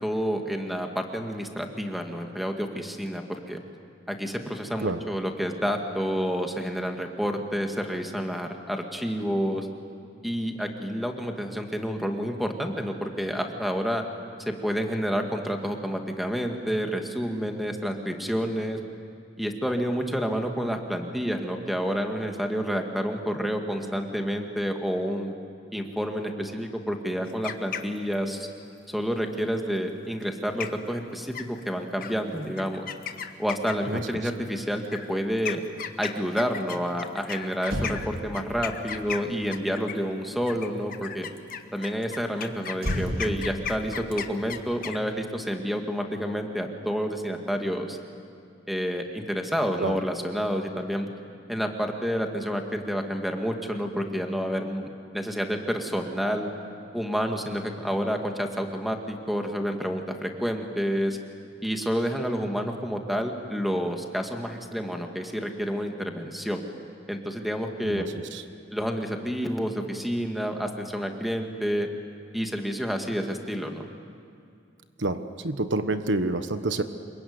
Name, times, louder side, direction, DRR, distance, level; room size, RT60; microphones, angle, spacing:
voice 1, 0.0-3.6 4.1-9.7 10.2-14.0 14.5-18.8 19.4-25.3 25.7-28.5 28.9-32.9 33.4-35.6 36.0-41.3 41.7-48.0 48.7-51.1 51.5-56.5 56.9-61.2 61.6-66.6 67.1-68.1 68.7-71.9 72.3-73.9, equal, ahead, 3 dB, 2.0 m, -29 dB
sound 1, 27.2-28.3 30.2-30.3 30.6-30.9 31.3-31.7 32.0-32.1 32.6-34.0 34.8-40.1 40.5-45.0, left 7 dB, 50° left, 1.3 m, -35 dB
Motor vehicle (road), 37.6-41.1 42.8-45.4 45.6-45.9, equal, 55° right, 4.0 m, -35 dB
voice 2, 75.0-76.8, right 2 dB, 75° right, 10 dB, 1.2 m, -27 dB
27.0 x 23.0 x 9.6 m, 2.4 s
head